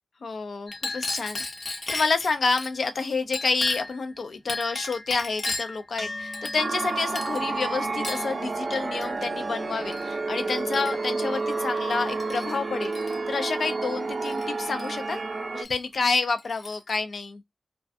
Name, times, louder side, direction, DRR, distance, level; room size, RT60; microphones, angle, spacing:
voice 1, 0.2-1.4 1.6-12.9 13.3-15.2 15.5-17.4, left 4 dB, 85° left, 0.4 m, -29 dB
Chink clink, 0.7-2.7 3.3-4.0 4.5-5.8 6.3-6.9 7.2-7.5 8.0-8.3 9.0-9.2 9.9-10.1 10.5-11.2 11.9-12.5 12.8-13.2 14.2-14.9 15.7-15.8 16.1-17.0, left 2 dB, 55° left, 0.7 m, -35 dB
sound 1, 6.0-14.6, left 1 dB, 5° left, 0.5 m, -44 dB
sound 2, 6.6-15.6, right 3 dB, 60° right, 0.5 m, -30 dB
2.3 x 2.3 x 2.4 m
wide cardioid pair, 90°, 0 cm